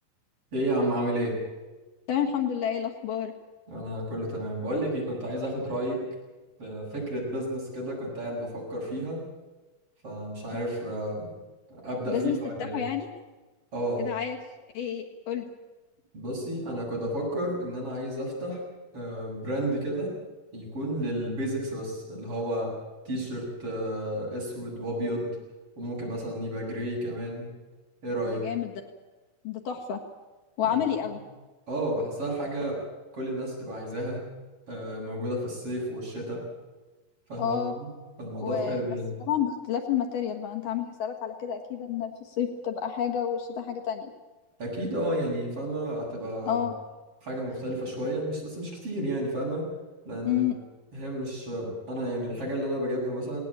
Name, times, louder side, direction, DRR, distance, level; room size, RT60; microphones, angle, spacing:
voice 1, 0.5-1.4 3.7-6.1 6.6-9.2 10.0-11.3 11.7-12.8 13.7-14.1 16.1-18.6 18.9-20.1 20.5-22.7 23.1-25.4 25.8-27.5 28.0-28.5 30.6-30.8 31.7-32.8 33.1-34.3 34.7-36.4 37.3-37.9 38.2-39.1 44.6-46.6 47.2-49.7 50.1-50.5 50.9-53.4, right 1 dB, 40° right, -3 dB, 8.7 m, -31 dB
voice 2, 2.1-3.3 12.1-13.1 14.0-14.4 14.7-15.5 28.2-28.7 29.4-30.0 30.6-31.2 37.4-37.7 38.4-38.8 39.3-44.1 46.5-46.7 50.2-50.6, left 9 dB, 70° left, 2 dB, 3.2 m, -29 dB
19.0 x 19.0 x 8.9 m, 1.2 s
omnidirectional pair, 4.2 m